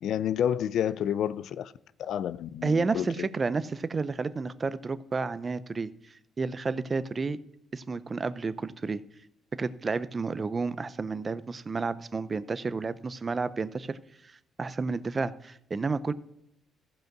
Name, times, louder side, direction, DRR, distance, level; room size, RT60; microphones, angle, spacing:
voice 1, 0.0-1.7 2.0-3.3, left 9 dB, 75° left, 0.4 m, -29 dB
voice 2, 2.6-5.9 6.4-7.4 7.7-9.0 9.6-14.0 14.2-16.1, right 4 dB, 30° right, 0.6 m, -31 dB
15.0 x 5.3 x 6.0 m
cardioid pair, 90°, 0 cm